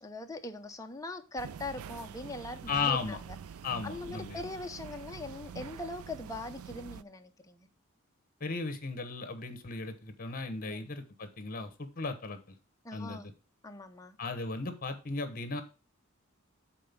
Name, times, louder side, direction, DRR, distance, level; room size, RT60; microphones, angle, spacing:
voice 1, 0.0-3.2 3.8-7.7 10.7-10.9 12.8-13.3 13.6-14.2, left 2 dB, 15° left, 5 dB, 0.8 m, -41 dB
sound 1, 1.4-7.0, right 7 dB, 85° right, 0.4 m, -46 dB
voice 2, 2.7-3.2 3.6-4.4 8.4-12.4 12.9-13.2 14.2-15.6, left 4 dB, 45° left, 9 dB, 1.2 m, -35 dB
7.6 x 4.3 x 5.3 m, 0.32 s
head